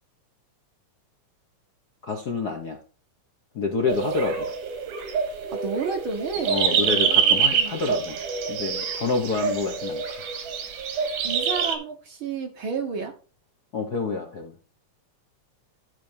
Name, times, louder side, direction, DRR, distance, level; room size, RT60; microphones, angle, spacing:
voice 1, 2.0-2.8 3.5-4.5 6.4-8.2 8.5-10.0 13.7-14.5, left 4 dB, 65° left, 2 dB, 1.0 m, -28 dB
sound 1, 3.9-11.8, right 6 dB, 75° right, 3.1 m, -26 dB
voice 2, 5.5-8.0 11.2-13.1, right 5 dB, 55° right, 4 dB, 1.5 m, -32 dB
12.5 x 4.9 x 4.6 m, 0.35 s
omnidirectional pair, 3.6 m